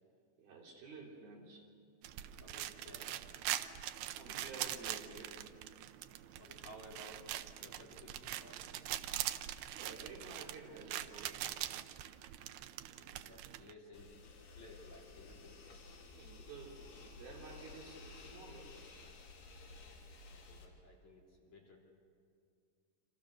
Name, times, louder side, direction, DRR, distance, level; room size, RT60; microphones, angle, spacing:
voice 1, 0.4-1.7 4.1-5.4 9.7-11.4 16.1-18.8, right 4 dB, 55° right, -1 dB, 4.3 m, -52 dB
sound 1, 2.0-13.7, right 13 dB, 85° right, 2.2 m, -43 dB
voice 2, 2.4-3.2 6.4-7.2 7.6-8.8 12.9-14.1 14.6-15.6 20.3-21.8, left 1 dB, 40° left, -3 dB, 4.2 m, -57 dB
sound 2, 13.9-20.7, left 3 dB, 75° left, 5.7 m, -54 dB
28.0 x 27.0 x 6.6 m, 2.3 s
omnidirectional pair, 5.6 m